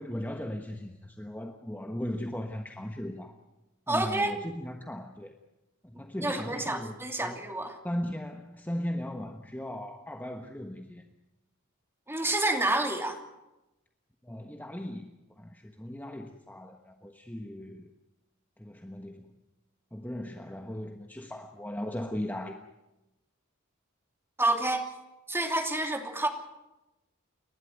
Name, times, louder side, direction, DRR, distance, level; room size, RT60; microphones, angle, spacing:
voice 1, 0.0-3.3 3.9-5.3 5.8-7.4 7.8-11.0 14.2-15.1 15.4-17.9 18.6-19.3 19.9-22.6, left 1 dB, 10° left, 4 dB, 1.3 m, -37 dB
voice 2, 3.9-4.3 6.2-7.7 12.1-13.2 24.4-24.9 25.3-26.3, right 2 dB, 10° right, 3 dB, 2.8 m, -28 dB
29.5 x 12.5 x 9.2 m, 0.98 s
head